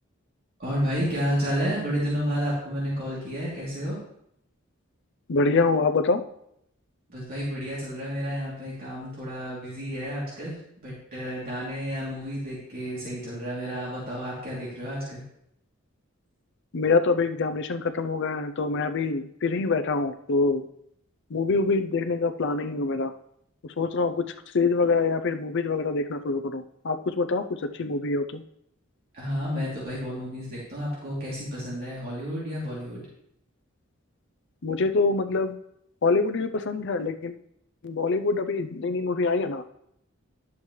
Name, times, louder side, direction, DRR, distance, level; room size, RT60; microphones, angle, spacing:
voice 1, 0.6-4.0 7.1-10.6 10.8-15.2 29.1-33.0, equal, 45° right, -7 dB, 3.0 m, -31 dB
voice 2, 5.3-6.2 16.7-20.6 21.3-23.1 23.8-24.2 24.5-27.5 27.7-28.4 34.6-35.6 36.0-37.3 37.8-39.7, left 3 dB, 60° left, 10 dB, 0.6 m, -25 dB
10.5 x 7.1 x 3.2 m, 0.74 s
head